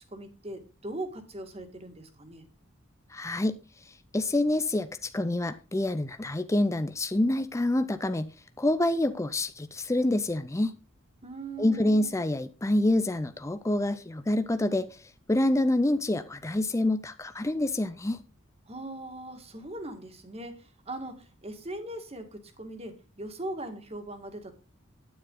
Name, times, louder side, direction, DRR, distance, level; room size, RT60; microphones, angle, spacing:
voice 1, 0.1-2.5 11.2-12.1 18.7-24.5, right 2 dB, 30° right, 1.8 m, -40 dB
voice 2, 3.1-3.6 3.9-8.3 8.6-10.8 11.6-18.2, left 1 dB, 15° left, 0.5 m, -27 dB
9.6 x 9.4 x 3.8 m
head